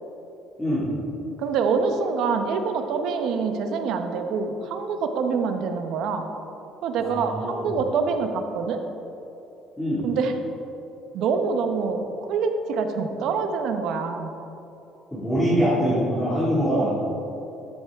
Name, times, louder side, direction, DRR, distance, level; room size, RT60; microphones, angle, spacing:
voice 1, 0.6-0.9 7.0-7.8 9.8-10.1 15.1-17.0, equal, 5° left, -10 dB, 2.0 m, -24 dB
voice 2, 1.4-6.2 6.8-8.8 10.0-10.3 11.1-14.3 16.7-17.0, right 5 dB, 60° right, 6 dB, 0.8 m, -25 dB
13.0 x 7.6 x 3.5 m, 2.9 s
cardioid pair, 175°, 0 cm